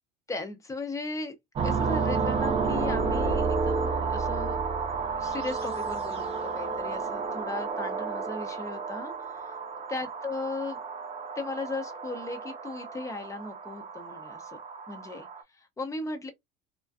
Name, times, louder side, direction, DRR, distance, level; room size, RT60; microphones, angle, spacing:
voice 1, 0.3-1.4 1.6-4.6 5.2-9.6 9.9-10.8 11.4-14.6 14.9-16.3, left 3 dB, 15° left, 0.6 m, -37 dB
sound 1, 1.6-15.4, right 4 dB, 30° right, 0.7 m, -31 dB
2.3 x 2.2 x 2.5 m
supercardioid pair, 120°, 20 cm